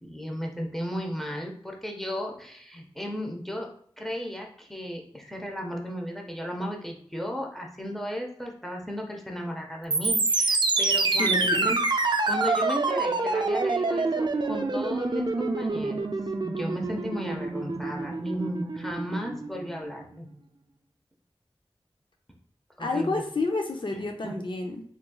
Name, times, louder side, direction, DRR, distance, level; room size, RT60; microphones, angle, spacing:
voice 1, 0.0-3.7 4.0-11.8 12.0-16.1 16.4-20.3 22.8-23.2 24.2-24.4, equal, 5° left, 1 dB, 0.8 m, -34 dB
sound 1, 9.9-19.9, right 3 dB, 50° right, 0.4 m, -27 dB
voice 2, 11.2-11.7 22.8-24.8, left 3 dB, 55° left, 3 dB, 0.5 m, -29 dB
3.5 x 3.0 x 2.3 m, 0.62 s
wide cardioid pair, 45°, 10 cm